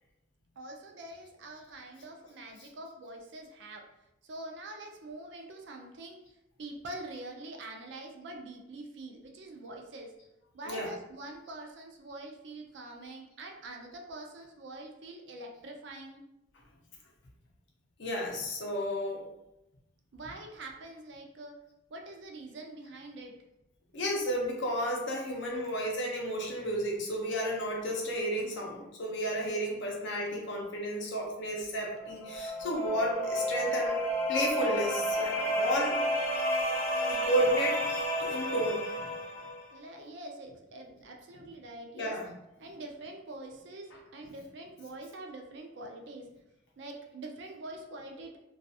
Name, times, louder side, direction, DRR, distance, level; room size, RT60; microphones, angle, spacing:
voice 1, 0.6-3.9 4.2-6.2 6.6-10.1 10.5-16.2 20.1-21.5 21.9-23.4 39.7-42.2 42.6-46.3 46.8-48.4, right 2 dB, 60° right, 2 dB, 0.4 m, -45 dB
voice 2, 18.0-19.2 23.9-34.0 34.3-36.0 37.1-37.9 38.2-39.1 41.9-42.3 43.9-44.3, equal, 60° left, -1 dB, 0.6 m, -32 dB
sound 1, 31.9-39.6, equal, 10° left, 0.6 m, -31 dB
2.3 x 2.3 x 2.7 m, 0.89 s
head